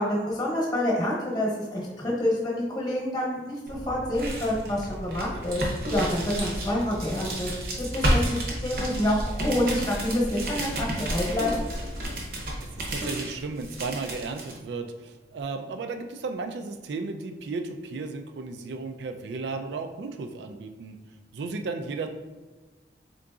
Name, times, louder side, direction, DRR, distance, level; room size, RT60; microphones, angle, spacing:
voice 1, 0.0-7.5 7.8-11.6, left 1 dB, 20° left, -4 dB, 1.0 m, -27 dB
sound 1, 3.7-14.5, right 1 dB, 55° right, 0.8 m, -31 dB
voice 2, 12.9-21.0 21.3-22.1, right 4 dB, 80° right, 6 dB, 0.3 m, -34 dB
3.8 x 3.8 x 2.3 m, 1.3 s
head